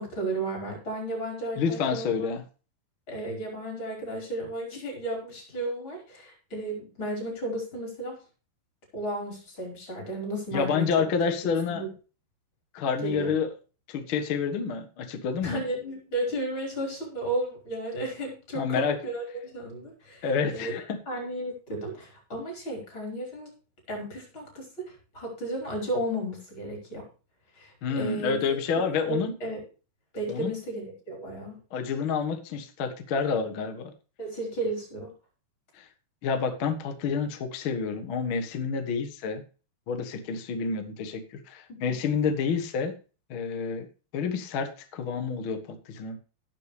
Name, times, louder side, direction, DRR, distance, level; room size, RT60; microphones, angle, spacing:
voice 1, 0.0-2.3 3.1-8.2 8.9-11.1 11.7-11.9 13.0-13.3 15.4-20.7 21.1-23.5 23.9-27.1 27.5-28.4 28.7-29.6 30.1-31.6 34.2-35.1 41.7-41.9, right 1 dB, 30° left, 0 dB, 5.1 m, -34 dB
voice 2, 1.6-2.4 10.5-11.8 12.7-13.5 13.9-15.6 18.5-19.0 20.2-21.0 27.8-29.3 30.3-30.5 31.7-33.9 35.8-35.9 36.2-39.4 39.9-41.2 41.5-42.9 43.3-43.9 44.1-46.2, left 5 dB, 70° left, 6 dB, 1.2 m, -28 dB
18.5 x 6.7 x 3.3 m, 0.35 s
omnidirectional pair, 4.8 m